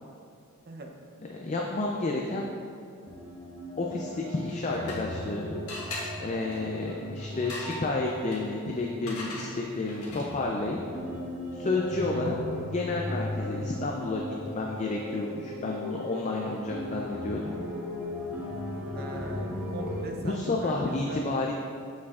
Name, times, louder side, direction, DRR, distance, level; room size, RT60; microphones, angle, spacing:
voice 1, 1.3-2.5 3.8-5.6 6.2-10.8 11.5-12.4 12.7-14.2 14.5-17.5 20.2-21.5, left 2 dB, 30° left, -1 dB, 0.4 m, -30 dB
sound 1, 3.1-20.0, left 1 dB, 10° right, 0.9 m, -37 dB
sound 2, 4.4-5.3 5.7-10.5, left 2 dB, 80° left, 1.2 m, -42 dB
voice 2, 11.9-12.3 18.9-21.3, right 2 dB, 45° right, 2 dB, 0.6 m, -41 dB
7.3 x 6.2 x 2.4 m, 2.4 s
head